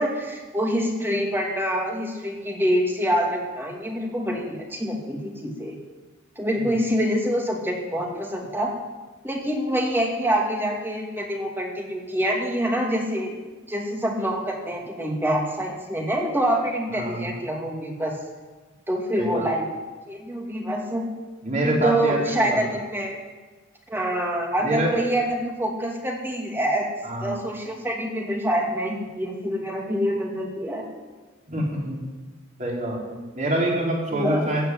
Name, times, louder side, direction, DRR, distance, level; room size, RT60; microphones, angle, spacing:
voice 1, 0.0-5.8 6.4-8.7 9.2-13.3 13.7-18.2 18.9-19.6 20.1-21.1 21.6-23.2 23.9-26.9 27.2-30.8 34.1-34.5, equal, 10° right, 0 dB, 2.5 m, -26 dB
voice 2, 16.9-17.3 19.2-19.5 21.4-22.6 24.6-24.9 27.0-27.4 31.5-32.0 32.6-34.7, right 1 dB, 35° right, -3 dB, 4.4 m, -26 dB
15.0 x 8.8 x 9.3 m, 1.3 s
head